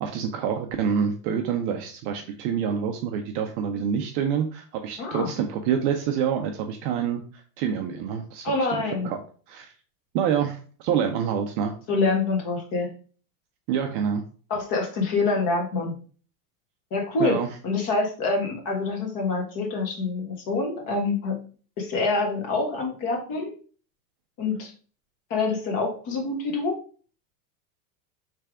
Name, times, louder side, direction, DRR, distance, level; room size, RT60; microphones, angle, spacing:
voice 1, 0.0-8.5 9.0-9.2 9.5-9.7 10.1-11.7 13.7-14.2 17.2-17.5, right 8 dB, 35° right, 4 dB, 0.4 m, -27 dB
voice 2, 5.0-5.3 8.4-9.1 11.9-12.9 14.5-15.9 16.9-17.4 17.6-21.4 21.8-23.5 24.4-24.7 25.3-26.8, left 3 dB, 45° left, 2 dB, 1.5 m, -26 dB
3.3 x 3.3 x 4.8 m, 0.41 s
supercardioid pair, 145°, 47 cm